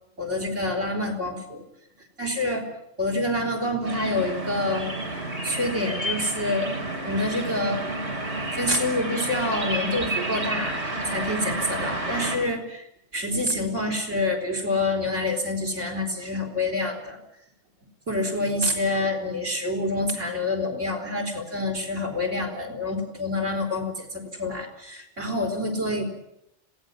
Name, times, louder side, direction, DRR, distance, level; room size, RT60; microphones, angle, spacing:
voice 1, 0.2-1.6 2.2-2.6 3.0-4.9 5.4-6.7 7.0-7.8 8.5-10.8 11.0-12.9 13.1-17.2 18.1-26.0, left 2 dB, 90° right, 5 dB, 4.8 m, -27 dB
sound 1, 3.8-12.4, right 1 dB, 65° right, 4.5 m, -30 dB
26.5 x 17.5 x 7.5 m, 0.81 s
omnidirectional pair, 1.2 m